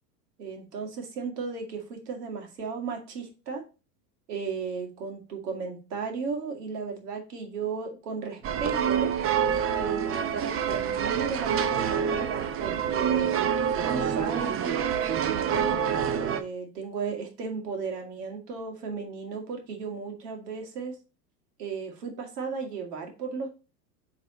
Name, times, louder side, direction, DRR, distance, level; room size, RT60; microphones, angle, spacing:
voice 1, 0.4-3.6 4.3-9.1 9.8-13.5 13.9-21.0 21.6-23.5, right 5 dB, 70° right, 3 dB, 2.3 m, -35 dB
sound 1, 8.4-16.4, right 8 dB, 30° right, 0.7 m, -27 dB
8.2 x 4.1 x 4.1 m, 0.31 s
hypercardioid pair, 85°, 49 cm